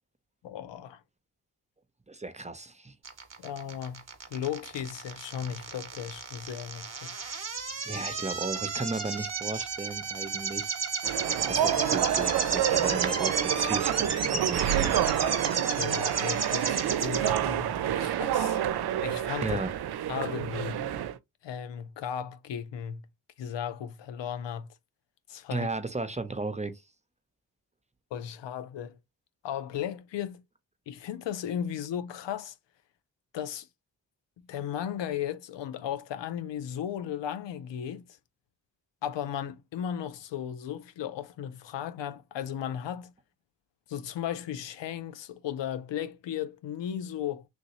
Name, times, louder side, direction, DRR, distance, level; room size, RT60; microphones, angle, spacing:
voice 1, 0.4-1.0 3.4-4.0 4.3-7.2 15.8-18.6 19.0-19.7 20.1-20.9 21.4-23.1 23.4-24.7 25.3-25.7 28.1-29.0 29.4-30.4 30.9-32.5 33.3-33.7 34.4-38.1 39.0-43.1 43.9-47.5, left 9 dB, 75° left, 0.5 m, -35 dB
voice 2, 2.1-2.9 7.9-10.7 11.5-15.0 19.4-19.7 25.5-26.7, right 3 dB, 15° right, 0.6 m, -35 dB
sound 1, 3.0-17.4, right 5 dB, 35° right, 1.0 m, -32 dB
sound 2, 11.0-21.2, right 10 dB, 60° right, 0.5 m, -28 dB
3.2 x 2.8 x 2.9 m
cardioid pair, 40°, 44 cm